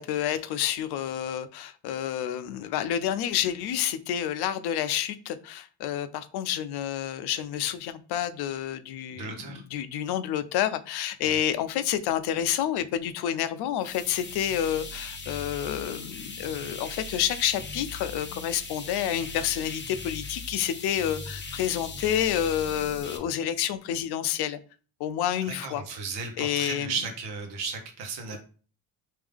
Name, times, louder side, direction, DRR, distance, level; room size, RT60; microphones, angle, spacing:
voice 1, 0.0-24.6 25.0-25.8 26.4-26.9, left 10 dB, 80° left, 13 dB, 0.5 m, -29 dB
voice 2, 9.1-9.6 11.3-11.4 25.4-28.4, right 5 dB, 90° right, 4 dB, 1.0 m, -35 dB
sound 1, 13.8-23.2, left 3 dB, 30° left, 0.7 m, -39 dB
3.5 x 2.7 x 3.4 m, 0.39 s
cardioid pair, 80°, 38 cm